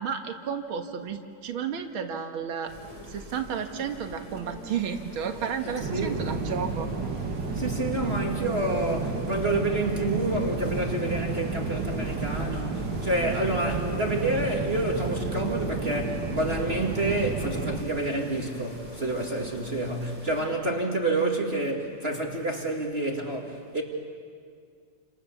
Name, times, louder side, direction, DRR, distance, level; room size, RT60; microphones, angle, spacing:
voice 1, 0.0-2.7 3.0-6.9, right 7 dB, 75° right, 5 dB, 2.3 m, -32 dB
sound 1, 2.7-20.4, equal, 15° left, 5.8 m, -43 dB
voice 2, 5.6-6.2 7.6-23.8, right 2 dB, 30° right, 1 dB, 2.2 m, -28 dB
sound 2, 5.8-17.8, right 3 dB, 60° right, 2.4 m, -31 dB
29.5 x 28.0 x 7.1 m, 2.1 s
omnidirectional pair, 2.3 m